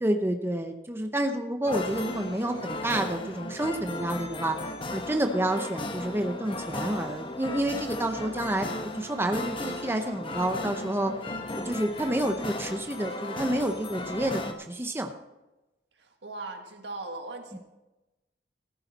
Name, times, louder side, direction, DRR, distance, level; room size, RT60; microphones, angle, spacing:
voice 1, 0.0-11.1 11.5-14.4 14.7-15.1 17.5-17.6, right 1 dB, 15° right, 5 dB, 0.7 m, -29 dB
sound 1, 1.6-14.5, left 2 dB, 30° left, 1.0 m, -36 dB
voice 2, 15.9-17.6, right 2 dB, 80° right, 4 dB, 1.7 m, -39 dB
14.5 x 10.0 x 4.0 m, 1.0 s
head